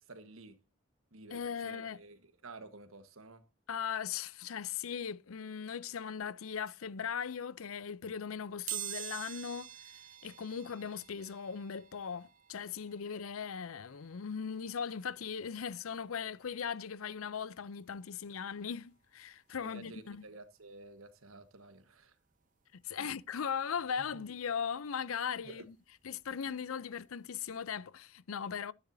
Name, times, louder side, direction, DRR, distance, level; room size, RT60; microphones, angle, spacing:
voice 1, 0.1-0.6 1.1-3.5 19.5-22.1 22.9-23.1 24.0-24.2 25.4-25.7 26.4-26.6, right 2 dB, 90° right, 1.4 m, -52 dB
voice 2, 1.3-2.0 3.7-9.7 10.2-20.2 22.7-25.7 26.0-28.7, left 7 dB, 90° left, 0.6 m, -39 dB
sound 1, 8.7-19.3 19.8-19.9 21.1-21.2 21.4-23.5 23.9-26.5 26.9-27.1 27.4-27.5, right 11 dB, 40° right, 0.6 m, -49 dB
13.5 x 9.9 x 2.7 m
head